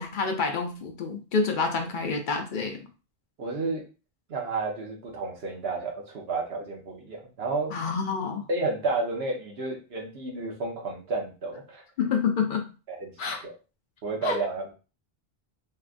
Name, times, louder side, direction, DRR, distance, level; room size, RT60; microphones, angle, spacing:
voice 1, 0.0-2.8 7.7-8.5 12.0-12.7 13.2-13.4 14.2-14.4, left 5 dB, 60° left, 4 dB, 0.7 m, -28 dB
voice 2, 3.4-3.8 4.3-7.7 8.5-11.8 12.9-13.1 13.4-13.6 14.0-14.7, right 3 dB, 80° right, 0 dB, 1.1 m, -31 dB
3.2 x 2.3 x 2.5 m, 0.33 s
omnidirectional pair, 1.0 m